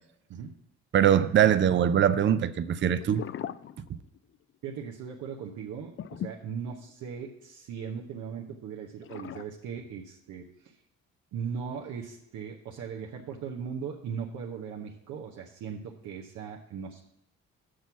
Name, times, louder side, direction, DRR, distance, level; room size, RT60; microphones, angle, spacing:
voice 1, 0.9-3.2 3.9-4.0, right 9 dB, 40° right, 0.5 m, -22 dB
sound 1, 3.0-4.4 4.7-4.8 6.0-7.3 9.0-9.5, left 10 dB, 45° left, 0.4 m, -39 dB
voice 2, 4.6-10.8 11.3-17.0, right 6 dB, 75° right, 1.0 m, -38 dB
6.4 x 6.1 x 7.0 m
cardioid pair, 90°, 30 cm